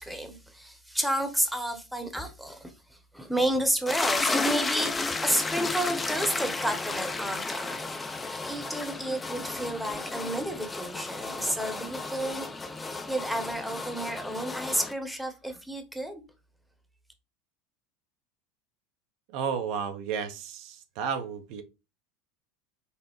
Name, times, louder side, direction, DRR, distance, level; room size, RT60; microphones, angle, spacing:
voice 1, 0.0-7.7 8.5-12.5 13.1-16.2, right 1 dB, ahead, 0.9 m, -31 dB
sound 1, 3.9-14.9, left 3 dB, 15° left, 0.5 m, -33 dB
voice 2, 19.3-21.6, right 6 dB, 65° right, 0.6 m, -32 dB
5.3 x 2.0 x 3.0 m
hypercardioid pair, 85°, 0 cm